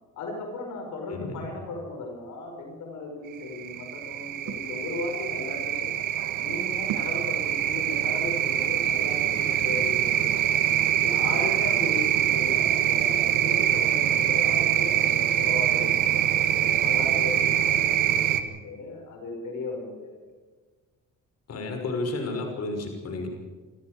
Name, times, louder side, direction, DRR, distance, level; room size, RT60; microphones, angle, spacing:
voice 1, 0.2-6.0 6.4-10.7 11.0-16.2 16.6-20.2, left 3 dB, 80° left, 2 dB, 5.6 m, -36 dB
voice 2, 1.1-1.5 9.5-9.9 17.6-17.7 21.5-23.3, left 2 dB, 55° left, 3 dB, 6.0 m, -32 dB
sound 1, 3.4-18.4, right 11 dB, 85° right, 1.9 m, -24 dB
28.5 x 14.5 x 6.6 m, 1.4 s
cardioid pair, 90°, 30 cm